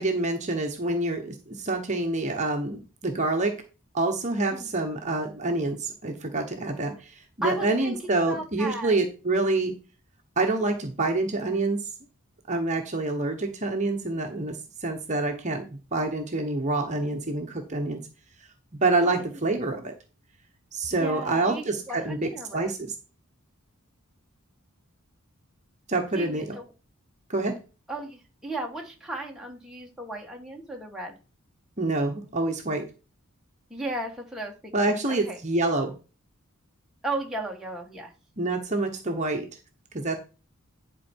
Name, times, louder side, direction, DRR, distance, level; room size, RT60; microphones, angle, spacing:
voice 1, 0.0-3.6 3.9-9.7 10.4-11.8 12.5-18.0 18.8-19.9 20.7-22.9 25.9-26.6 27.3-27.6 31.8-32.9 34.7-35.9 38.4-39.4 39.9-40.2, right 2 dB, 35° right, 3 dB, 1.1 m, -27 dB
voice 2, 7.4-8.9 19.0-19.2 21.0-22.7 26.1-26.6 27.9-31.1 33.7-35.4 37.0-38.1, right 2 dB, ahead, -1 dB, 1.6 m, -35 dB
11.0 x 4.6 x 4.5 m, 0.33 s
head